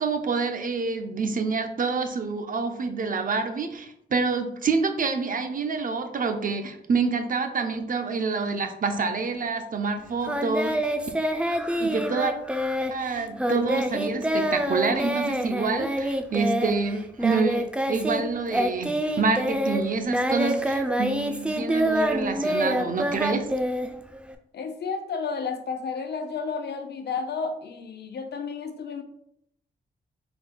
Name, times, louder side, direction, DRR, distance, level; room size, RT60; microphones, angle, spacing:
voice 1, 0.0-10.9 11.8-12.3 12.9-23.5, right 4 dB, 50° right, 6 dB, 0.6 m, -27 dB
Singing, 10.3-18.2 18.5-24.3, equal, 5° right, 0.4 m, -26 dB
voice 2, 24.5-29.0, left 5 dB, 70° left, 7 dB, 0.6 m, -32 dB
4.2 x 3.8 x 2.2 m, 0.74 s
cardioid pair, 70°, 18 cm